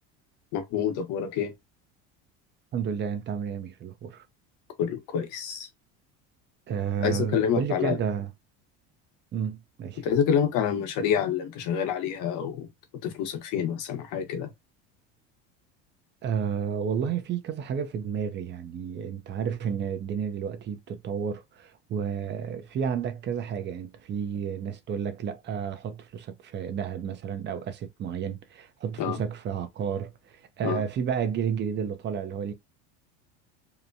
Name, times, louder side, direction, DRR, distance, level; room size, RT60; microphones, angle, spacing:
voice 1, 0.5-1.5 4.8-5.7 7.0-8.0 10.0-12.7 13.0-14.5 29.0-29.2 30.6-30.8, left 8 dB, 65° left, 1.0 m, -27 dB
voice 2, 2.7-4.2 6.7-8.3 9.3-10.0 16.2-32.5, right 7 dB, 35° right, 0.5 m, -31 dB
2.9 x 2.2 x 2.6 m
cardioid pair, 130°, 32 cm